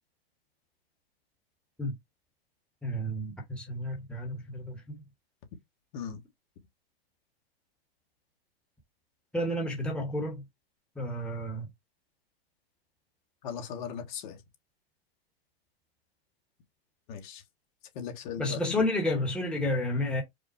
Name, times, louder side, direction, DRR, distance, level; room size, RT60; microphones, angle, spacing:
voice 1, 2.8-5.0 9.3-10.4 11.0-11.7 18.4-20.2, left 1 dB, 5° left, 1.0 m, -31 dB
voice 2, 13.4-14.4 17.1-17.4 17.9-18.6, left 7 dB, 50° left, 1.3 m, -38 dB
5.0 x 2.1 x 4.2 m
hypercardioid pair, 135°, 31 cm